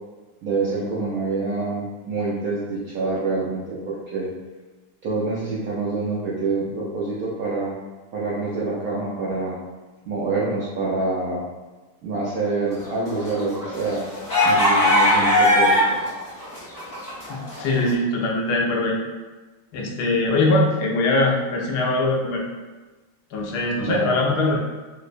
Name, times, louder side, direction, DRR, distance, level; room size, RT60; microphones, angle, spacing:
voice 1, 0.4-4.3 5.0-7.8 8.1-9.6 10.1-11.4 12.0-14.0 14.4-16.0 23.8-24.2, right 3 dB, 80° right, -7 dB, 0.8 m, -26 dB
sound 1, 12.9-16.1 16.4-17.7, left 1 dB, 40° left, 0.9 m, -19 dB
voice 2, 17.3-19.0 19.7-22.4 23.3-24.6, left 2 dB, 70° left, -1 dB, 1.0 m, -22 dB
4.6 x 2.0 x 2.5 m, 1.2 s
omnidirectional pair, 2.3 m